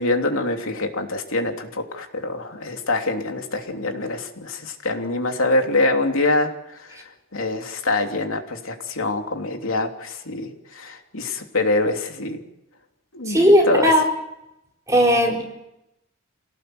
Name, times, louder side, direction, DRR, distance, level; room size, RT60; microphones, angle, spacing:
voice 1, 0.0-12.4 13.1-13.9, left 2 dB, 80° left, 3 dB, 3.1 m, -25 dB
voice 2, 13.3-14.0 14.9-15.4, equal, 15° right, 0 dB, 4.5 m, -16 dB
27.5 x 18.0 x 7.9 m, 0.89 s
head